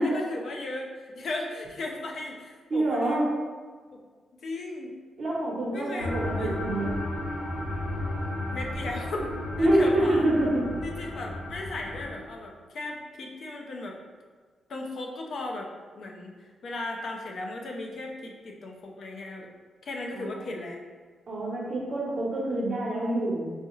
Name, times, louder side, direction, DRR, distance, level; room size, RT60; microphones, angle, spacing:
voice 1, 0.0-3.3 3.9-4.0 4.4-4.9 5.7-6.5 8.5-10.2 10.8-14.0 14.7-15.7 16.0-16.3 16.6-19.5 19.8-20.8, left 2 dB, 55° left, 1 dB, 0.5 m, -36 dB
voice 2, 2.7-3.3 5.2-6.9 9.6-10.7 20.1-20.5 21.3-23.5, right 1 dB, 45° right, -4 dB, 0.9 m, -26 dB
sound 1, 6.0-12.1, left 1 dB, 75° left, 0.9 m, -33 dB
4.1 x 2.3 x 3.1 m, 1.5 s
wide cardioid pair, 140°, 0 cm